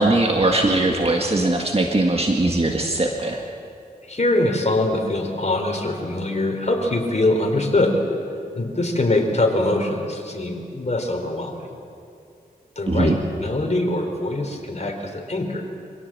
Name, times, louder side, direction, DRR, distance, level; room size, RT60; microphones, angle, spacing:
voice 1, 0.0-3.4 12.9-13.2, right 2 dB, 40° right, 1 dB, 1.8 m, -20 dB
voice 2, 4.1-8.0 8.5-11.6 12.8-15.7, left 2 dB, 45° left, 3 dB, 3.9 m, -23 dB
25.0 x 17.0 x 7.6 m, 2.5 s
cardioid pair, 50°, 16 cm